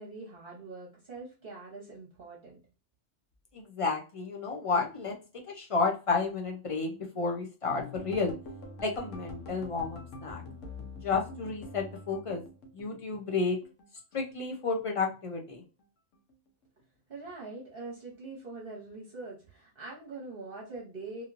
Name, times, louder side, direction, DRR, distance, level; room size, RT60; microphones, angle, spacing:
voice 1, 0.0-2.6 17.1-21.2, right 3 dB, 50° right, -3 dB, 1.0 m, -43 dB
voice 2, 3.5-5.2 5.5-8.3 8.8-10.4 11.0-12.4 12.7-13.6 14.1-15.6, left 4 dB, 60° left, 1 dB, 0.3 m, -31 dB
sound 1, 7.7-13.9 14.1-15.2 15.5-15.8 16.1-16.3, left 2 dB, 85° left, 1.0 m, -45 dB
2.9 x 2.9 x 2.4 m, 0.32 s
omnidirectional pair, 1.3 m